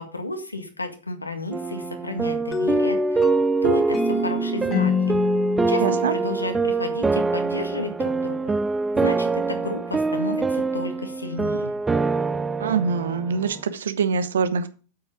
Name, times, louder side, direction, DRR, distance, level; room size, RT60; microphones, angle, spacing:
voice 1, 0.0-3.2 3.6-5.2 5.7-8.5 8.9-11.7, left 2 dB, 80° left, 6 dB, 1.8 m, -32 dB
sound 1, 1.5-13.6, right 4 dB, 15° right, 0.4 m, -25 dB
sound 2, 2.5-7.2, left 3 dB, 20° left, 1.0 m, -26 dB
voice 2, 5.8-6.1 12.6-14.7, right 5 dB, 65° right, 12 dB, 1.1 m, -24 dB
8.6 x 7.9 x 5.0 m, 0.36 s
figure-of-eight pair, 90°, 0 cm